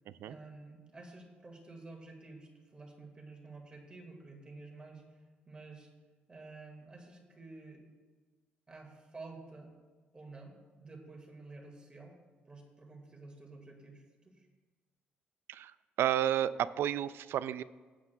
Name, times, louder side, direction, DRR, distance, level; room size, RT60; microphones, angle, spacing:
voice 1, 0.2-5.9 6.3-7.9 8.7-9.7 10.1-12.2 12.5-14.5, right 3 dB, 25° right, 1 dB, 1.9 m, -51 dB
voice 2, 16.0-17.6, right 11 dB, 75° right, 15 dB, 0.3 m, -31 dB
15.5 x 8.6 x 2.3 m, 1.4 s
cardioid pair, 105°, 4 cm